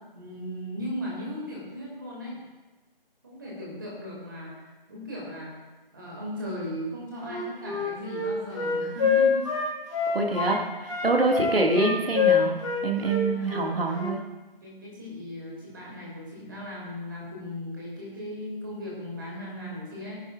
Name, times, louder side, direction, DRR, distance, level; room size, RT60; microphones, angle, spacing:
voice 1, 0.1-2.4 3.2-5.5 5.9-9.5 13.2-14.0 14.6-20.2, left 1 dB, 20° right, -5 dB, 2.4 m, -37 dB
Wind instrument woodwind instrument, 7.2-10.6 10.9-14.1, left 6 dB, 30° left, 2.0 m, -26 dB
voice 2, 10.1-14.2, right 2 dB, 80° right, 0 dB, 2.1 m, -25 dB
16.0 x 10.5 x 2.4 m, 1.1 s
figure-of-eight pair, 175°, 29 cm